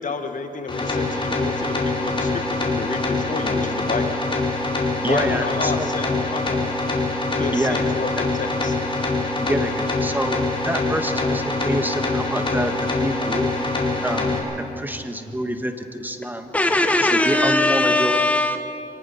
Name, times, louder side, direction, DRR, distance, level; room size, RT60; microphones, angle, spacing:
voice 1, 0.0-4.2 5.0-6.6 7.4-8.8, left 4 dB, 55° left, 6 dB, 1.7 m, -30 dB
sound 1, 0.7-14.4, left 2 dB, 35° left, 4.7 m, -24 dB
voice 2, 5.0-5.9 7.5-7.9 9.4-13.7 14.0-14.4 14.7-16.5 17.0-18.2, right 1 dB, 10° right, 6 dB, 1.6 m, -27 dB
voice 3, 16.5-18.8, left 2 dB, 10° left, 6 dB, 1.4 m, -19 dB
24.5 x 19.0 x 5.8 m, 2.7 s
cardioid pair, 70°, 16 cm